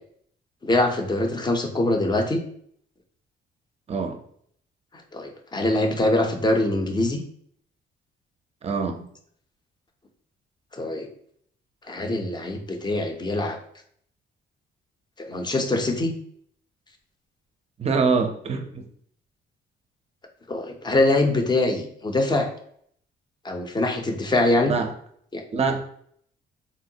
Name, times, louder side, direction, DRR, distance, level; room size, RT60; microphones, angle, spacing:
voice 1, 0.6-2.4 5.1-7.2 10.7-11.1 11.9-13.6 15.2-16.1 20.5-22.5 23.4-24.8 25.3-25.4, left 2 dB, 20° left, 5 dB, 0.5 m, -23 dB
voice 2, 8.6-9.0 17.8-18.8 24.7-24.9 25.5-25.8, right 4 dB, 30° right, 6 dB, 0.5 m, -24 dB
3.8 x 2.0 x 2.7 m, 0.64 s
cardioid pair, 90°, 20 cm